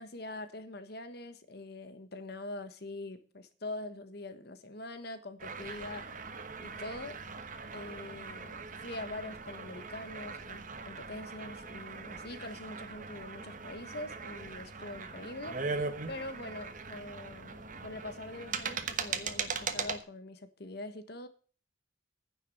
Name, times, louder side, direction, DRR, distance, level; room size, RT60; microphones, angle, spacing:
voice 1, 0.0-6.1 6.6-7.2 7.7-8.5 8.8-15.6 16.1-21.3, left 2 dB, 55° left, 10 dB, 1.4 m, -43 dB
sound 1, 5.4-20.0, right 5 dB, 40° right, 1.1 m, -40 dB
10.0 x 7.2 x 7.7 m, 0.40 s
head